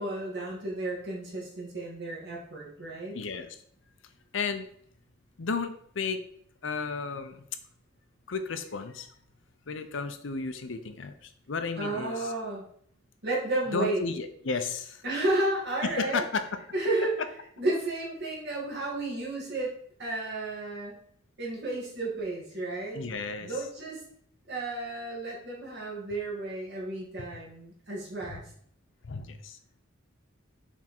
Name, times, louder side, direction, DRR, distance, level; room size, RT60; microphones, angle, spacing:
voice 1, 0.0-3.2 11.8-12.6 13.2-14.0 15.0-16.2 16.7-17.1 17.6-21.0 21.4-23.0 23.4-24.0 24.5-28.4, right 2 dB, 60° right, -4 dB, 2.3 m, -32 dB
voice 2, 3.1-3.6 4.3-4.7 5.4-6.2 6.6-7.4 8.3-9.1 9.7-12.3 13.7-15.0 15.8-16.4 22.9-23.7 28.3-28.4 29.0-29.6, left 4 dB, 65° left, 8 dB, 0.6 m, -33 dB
6.0 x 3.6 x 4.4 m, 0.63 s
head